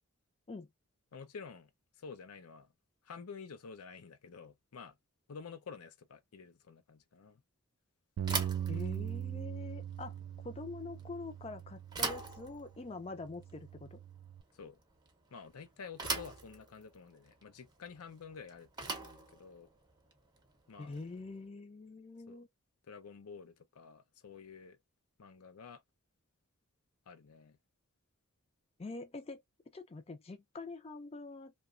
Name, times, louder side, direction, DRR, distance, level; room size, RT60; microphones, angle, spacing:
voice 1, 1.1-1.7 2.0-2.7 3.0-5.0 5.3-7.4 14.5-14.8 15.3-19.7 20.7-21.0 22.3-22.4 22.8-24.8 25.2-25.8 27.1-27.6, left 5 dB, 85° left, 0.5 m, -50 dB
Bicycle / Thump thud, 8.2-21.3, right 4 dB, 20° right, 0.6 m, -43 dB
Bass guitar, 8.2-12.6 13.2-14.4, right 10 dB, 75° right, 0.3 m, -41 dB
voice 2, 8.7-10.1 10.4-14.0 20.8-22.5 28.8-29.4 29.7-31.5, left 3 dB, 25° left, 0.4 m, -45 dB
2.8 x 2.2 x 2.3 m
head